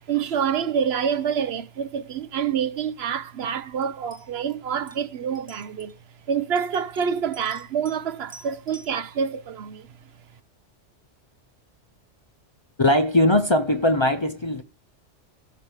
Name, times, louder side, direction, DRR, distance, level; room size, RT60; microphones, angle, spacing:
voice 1, 0.1-5.9 6.3-9.9, right 7 dB, 65° right, 0.9 m, -27 dB
sound 1, 3.8-3.9 4.1-4.5 4.9-5.0 5.3-5.9 6.6-8.0 8.3-8.9, right 1 dB, 5° right, 1.3 m, -48 dB
voice 2, 12.8-14.6, left 1 dB, 30° left, 0.6 m, -20 dB
16.5 x 6.2 x 3.4 m
omnidirectional pair, 1.2 m